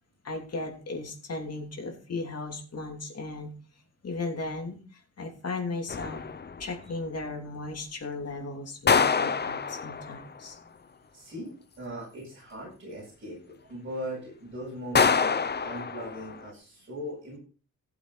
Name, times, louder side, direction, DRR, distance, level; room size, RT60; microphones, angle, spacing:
voice 1, 0.2-3.5 4.0-6.2 6.6-10.6, left 3 dB, 55° left, 2 dB, 3.0 m, -36 dB
sound 1, 5.9-6.8 8.9-10.4 14.9-16.5, left 5 dB, 35° left, 0.7 m, -26 dB
voice 2, 11.1-17.4, equal, 40° right, -6 dB, 7.8 m, -39 dB
16.0 x 8.1 x 4.1 m, 0.38 s
wide cardioid pair, 155°, 30 cm